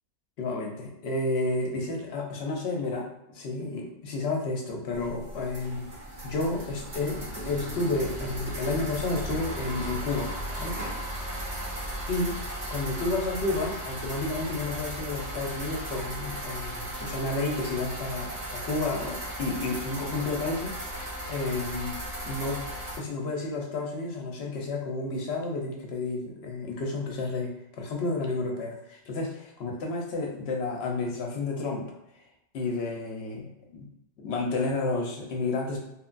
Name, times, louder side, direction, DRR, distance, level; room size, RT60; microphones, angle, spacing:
voice 1, 0.4-5.9 6.2-10.3 10.6-10.8 11.2-11.5 12.1-12.4 12.7-22.0 22.3-22.7 23.0-31.9 32.5-33.9 34.2-35.8, left 2 dB, 65° left, 0 dB, 0.8 m, -31 dB
sound 1, 4.9-23.0, right 1 dB, 45° right, 0.7 m, -36 dB
3.0 x 2.2 x 2.4 m, 0.84 s
omnidirectional pair, 1.2 m